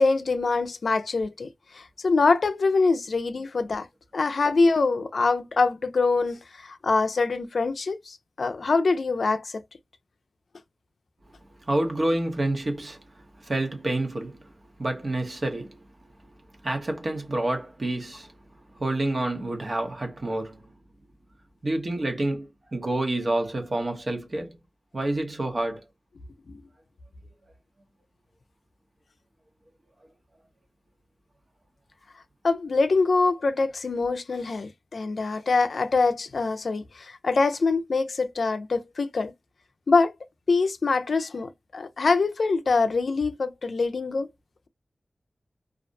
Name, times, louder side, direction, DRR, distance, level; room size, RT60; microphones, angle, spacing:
voice 1, 0.0-1.5 1.7-3.9 4.1-9.6 26.5-26.6 32.4-39.3 39.9-40.1 40.5-44.3, left 3 dB, 85° left, 0.4 m, -24 dB
voice 2, 11.6-14.5 14.8-15.8 16.6-18.3 18.7-20.7 21.6-24.6 24.9-25.8, right 1 dB, 50° right, 0.8 m, -28 dB
2.4 x 2.0 x 2.6 m
wide cardioid pair, 70°, 0 cm